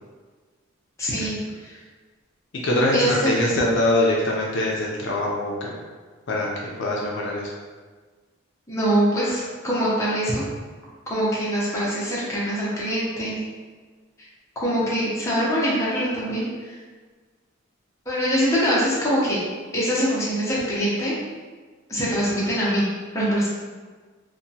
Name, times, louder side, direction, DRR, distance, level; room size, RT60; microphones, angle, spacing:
voice 1, 1.0-1.8 2.9-3.4 8.7-10.4 11.1-13.4 14.6-16.8 18.1-19.4 19.7-21.1 21.9-22.9 23.1-23.5, equal, 15° left, -8 dB, 0.6 m, -23 dB
voice 2, 2.6-5.7 6.3-6.5 6.8-7.5, left 1 dB, 60° left, -3 dB, 0.4 m, -23 dB
2.8 x 2.2 x 2.7 m, 1.4 s
head